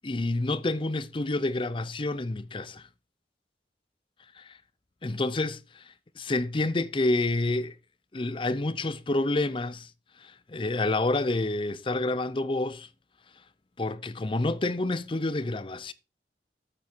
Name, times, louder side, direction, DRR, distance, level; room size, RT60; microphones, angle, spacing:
voice 1, 0.0-2.8 4.4-4.6 5.0-7.7 8.1-9.9 10.2-12.9 13.8-15.9, left 2 dB, 30° left, 0.6 m, -28 dB
8.5 x 8.5 x 4.5 m
head